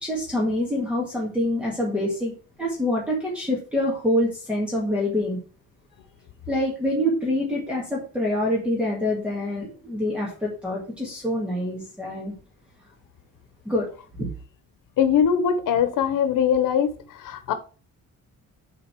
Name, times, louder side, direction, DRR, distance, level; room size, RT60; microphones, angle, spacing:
voice 1, 0.0-2.3 2.6-5.4 6.5-12.3 13.7-13.9 14.2-14.3, left 1 dB, 5° right, 1.9 m, -26 dB
voice 2, 15.0-16.9 17.2-17.5, left 8 dB, 90° left, 1.1 m, -21 dB
7.8 x 3.9 x 6.0 m
cardioid pair, 180°, 31 cm